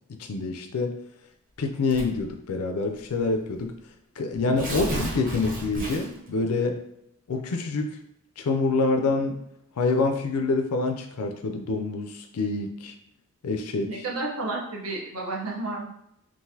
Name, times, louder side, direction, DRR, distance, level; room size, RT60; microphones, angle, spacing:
voice 1, 0.2-0.9 1.6-3.7 4.2-6.8 7.3-7.9 8.4-9.4 9.8-12.9 13.4-13.9, left 3 dB, 85° left, 4 dB, 0.5 m, -26 dB
Tearing, 1.9-2.3 3.2-3.3 3.6-3.7 4.3-6.3, right 1 dB, 40° right, 0.7 m, -32 dB
voice 2, 13.9-15.9, right 2 dB, 70° right, -1 dB, 0.8 m, -31 dB
3.8 x 2.5 x 2.7 m, 0.77 s
head